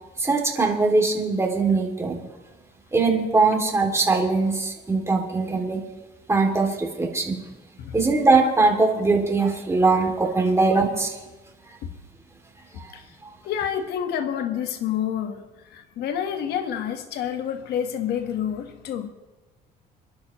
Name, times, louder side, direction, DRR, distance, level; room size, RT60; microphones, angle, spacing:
voice 1, 0.2-2.3 2.9-5.8 6.3-7.4 7.9-11.1 12.8-12.9, right 3 dB, 15° right, 2.7 m, -21 dB
voice 2, 12.7-13.1 13.4-19.1, left 9 dB, 75° left, 1.5 m, -29 dB
26.0 x 11.5 x 3.1 m
cardioid pair, 110°, 17 cm